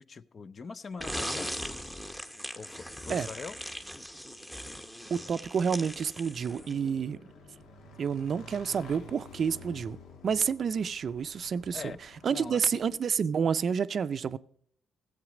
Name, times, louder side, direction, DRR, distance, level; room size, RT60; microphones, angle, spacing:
voice 1, 0.0-1.5 2.6-3.6 11.7-12.0 12.3-12.8, left 5 dB, 40° left, 0.5 m, -42 dB
sound 1, 1.0-6.9, equal, 10° left, 0.9 m, -39 dB
voice 2, 5.1-7.2 8.0-10.0 10.2-11.8 12.2-14.4, right 6 dB, 50° right, 0.5 m, -29 dB
Motorcycle / Engine, 6.0-13.3, left 2 dB, 85° left, 1.3 m, -51 dB
Boom, 6.5-8.3, left 3 dB, 60° left, 1.8 m, -54 dB
15.0 x 8.0 x 4.9 m
cardioid pair, 90°, 0 cm